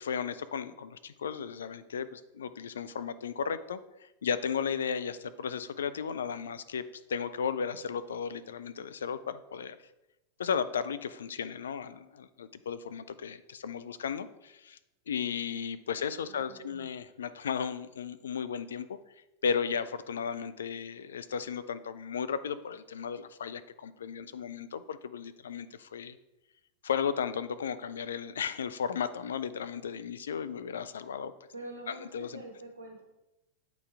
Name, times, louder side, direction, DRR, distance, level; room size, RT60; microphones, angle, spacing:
voice 1, 0.0-6.8 7.1-9.8 10.4-14.8 15.1-19.0 19.4-26.2 26.8-31.3 31.9-32.4, left 7 dB, 65° left, 13 dB, 0.3 m, -35 dB
voice 2, 16.3-16.9 31.5-33.0, right 2 dB, 75° right, -2 dB, 0.8 m, -45 dB
8.2 x 4.0 x 3.4 m, 0.96 s
figure-of-eight pair, 90°, 0 cm